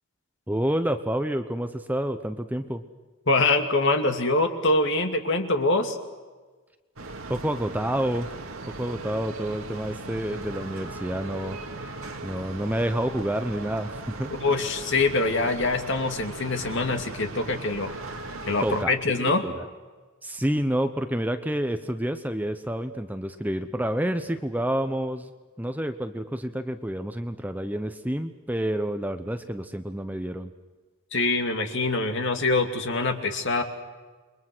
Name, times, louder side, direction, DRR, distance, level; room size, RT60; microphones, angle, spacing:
voice 1, 0.5-2.8 7.3-8.3 8.8-11.6 12.2-14.3 18.6-19.7 20.2-25.3 25.6-30.5, right 1 dB, 10° right, 8 dB, 0.9 m, -29 dB
voice 2, 3.3-6.0 14.4-17.9 18.5-19.4 31.1-33.6, left 3 dB, 55° left, 5 dB, 2.5 m, -24 dB
sound 1, 7.0-18.8, right 2 dB, 70° right, 2.3 m, -38 dB
29.0 x 23.0 x 6.2 m, 1.3 s
head